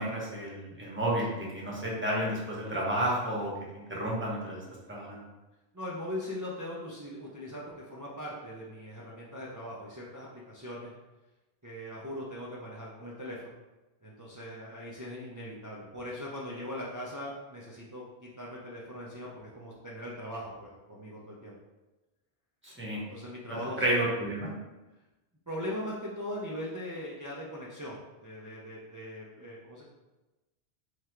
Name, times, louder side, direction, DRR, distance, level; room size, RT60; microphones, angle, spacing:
voice 1, 0.0-4.6 4.9-5.2 22.6-23.0 23.8-24.5, right 1 dB, 10° right, -4 dB, 0.8 m, -31 dB
voice 2, 5.7-10.9 11.6-13.6 14.0-21.6 23.1-24.1 25.5-29.8, left 1 dB, 30° right, -5 dB, 0.3 m, -40 dB
3.3 x 2.4 x 4.3 m, 1.1 s
omnidirectional pair, 1.1 m